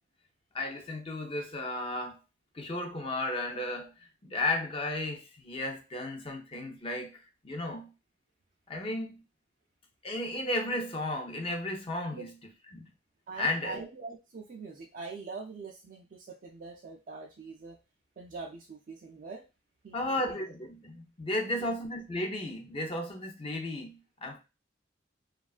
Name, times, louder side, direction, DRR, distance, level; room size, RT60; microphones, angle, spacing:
voice 1, 0.5-2.2 2.5-3.9 4.2-7.9 8.7-9.2 10.0-12.3 12.7-12.9 13.4-13.8 19.9-24.4, left 1 dB, 30° left, 0.5 m, -34 dB
voice 2, 13.3-17.8 18.2-19.4 19.8-20.4 21.6-21.8, right 4 dB, 45° right, 0.4 m, -43 dB
2.9 x 2.3 x 2.3 m
head